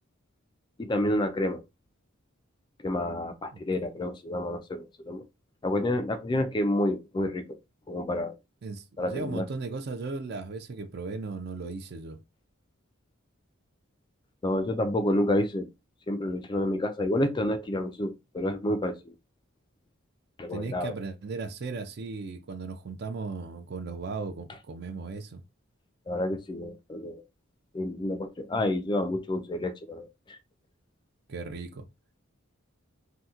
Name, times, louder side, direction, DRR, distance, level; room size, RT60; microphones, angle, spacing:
voice 1, 0.8-1.6 2.8-5.2 5.6-7.6 7.9-8.4 9.0-9.5 14.4-15.7 16.1-19.1 20.4-20.9 26.1-27.2 27.7-30.4, left 1 dB, 20° left, 0.3 m, -29 dB
voice 2, 8.6-12.2 20.5-25.4 31.3-31.9, right 4 dB, 50° right, 0.4 m, -36 dB
2.8 x 2.1 x 3.6 m
head